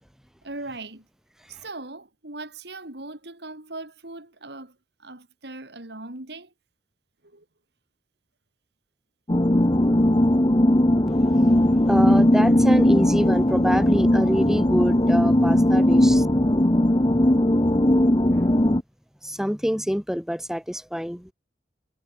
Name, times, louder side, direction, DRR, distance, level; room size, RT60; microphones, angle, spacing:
voice 1, 0.4-1.1 1.5-6.5 7.2-7.5 17.9-18.5, right 2 dB, 65° right, 3.6 m, -40 dB
sound 1, 9.3-18.8, left 1 dB, 25° left, 1.3 m, -18 dB
voice 2, 11.1-16.3 19.2-21.3, equal, 5° right, 5.1 m, -26 dB
head